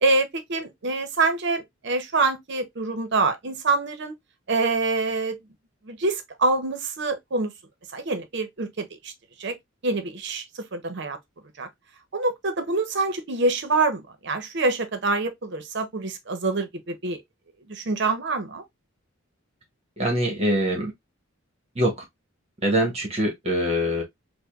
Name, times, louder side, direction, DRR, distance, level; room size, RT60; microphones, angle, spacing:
voice 1, 0.0-4.2 4.5-5.4 5.9-7.5 7.9-9.1 9.4-9.5 9.8-10.4 10.7-11.2 11.6-11.7 12.1-17.2 17.7-18.6, right 3 dB, 55° right, 0.7 m, -25 dB
voice 2, 20.0-20.9 21.7-22.0 22.6-24.0, equal, 30° right, 1.0 m, -23 dB
4.8 x 2.1 x 2.3 m
head